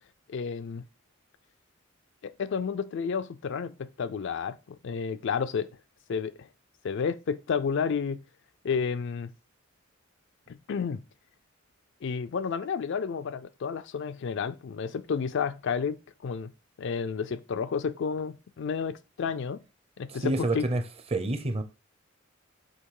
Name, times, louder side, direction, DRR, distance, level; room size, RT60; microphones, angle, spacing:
voice 1, 0.3-0.8 2.2-5.7 6.1-6.5 6.8-8.2 8.6-9.3 10.5-11.0 12.0-16.5 16.8-19.6 20.0-20.6, left 6 dB, 65° left, 0.4 m, -31 dB
voice 2, 20.1-20.8 21.1-21.6, right 2 dB, 30° right, 0.6 m, -28 dB
6.5 x 3.1 x 4.7 m
head